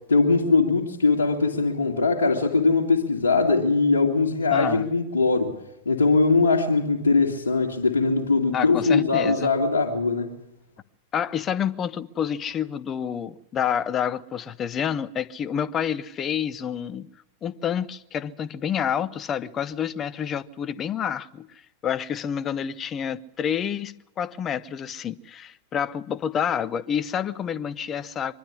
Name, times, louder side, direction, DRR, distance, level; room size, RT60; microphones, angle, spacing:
voice 1, 0.0-5.5 5.9-10.4, left 3 dB, 75° left, 2.1 m, -21 dB
voice 2, 4.5-4.8 8.5-9.5 11.1-17.1 17.4-21.5 21.8-28.3, left 8 dB, 25° left, 0.8 m, -28 dB
23.5 x 12.0 x 9.7 m
figure-of-eight pair, 90°, 0 cm